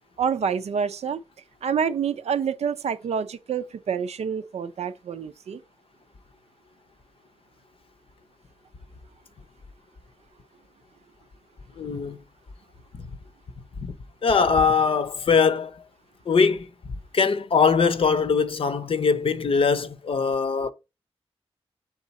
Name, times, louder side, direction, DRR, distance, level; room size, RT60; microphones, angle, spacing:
voice 1, 0.2-1.2 1.6-5.6, right 7 dB, 80° right, 0.5 m, -27 dB
voice 2, 11.8-12.2 13.8-13.9 14.2-15.8 16.3-16.7 17.1-20.7, left 5 dB, 55° left, 0.6 m, -21 dB
7.1 x 3.7 x 4.0 m
wide cardioid pair, 95°, 11 cm